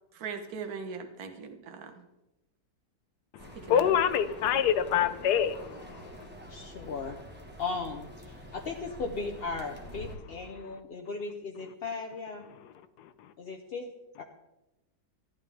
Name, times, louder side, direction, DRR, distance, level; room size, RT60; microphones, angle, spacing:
voice 1, 0.1-2.0 3.5-3.9, right 5 dB, 60° right, 5 dB, 1.6 m, -40 dB
sound 1, 3.4-10.1, equal, 5° right, 1.1 m, -47 dB
voice 2, 3.7-6.0, left 9 dB, 70° left, 12 dB, 1.2 m, -25 dB
voice 3, 6.5-7.2 7.6-12.5 13.4-13.9 14.2-14.3, left 4 dB, 50° left, 2 dB, 0.8 m, -37 dB
14.5 x 10.5 x 3.4 m, 0.97 s
omnidirectional pair, 1.9 m